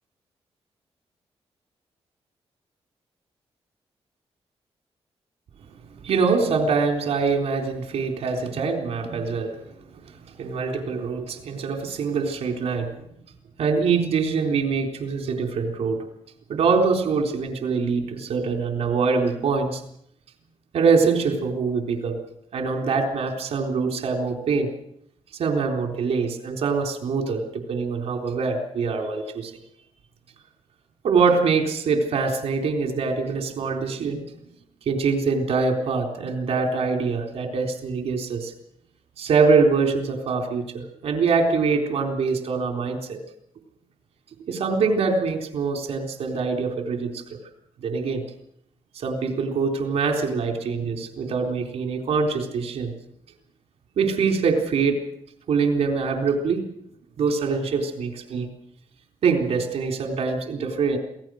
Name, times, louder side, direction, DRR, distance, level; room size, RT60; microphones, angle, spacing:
voice 1, 6.0-9.6 9.9-10.0 10.4-12.9 13.6-16.0 16.5-19.8 20.7-22.2 22.5-24.7 25.4-29.5 31.0-34.2 34.9-38.5 39.2-43.2 44.5-47.2 47.8-48.2 49.0-52.9 54.0-55.0 55.5-56.6 57.2-58.5 59.2-61.0, right 4 dB, 85° right, 4 dB, 4.0 m, -24 dB
27.0 x 18.0 x 6.5 m, 0.72 s
cardioid pair, 85°, 10 cm